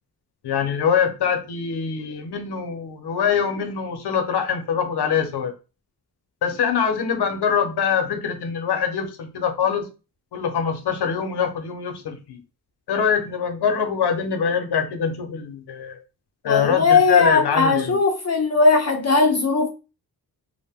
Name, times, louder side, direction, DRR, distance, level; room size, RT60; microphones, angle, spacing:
voice 1, 0.4-5.5 6.4-9.9 10.3-12.4 12.9-16.0 16.4-18.0, left 7 dB, 90° left, 0.7 m, -24 dB
voice 2, 16.5-19.7, left 4 dB, 45° left, 0.4 m, -18 dB
2.5 x 2.1 x 3.4 m
wide cardioid pair, 140°, 38 cm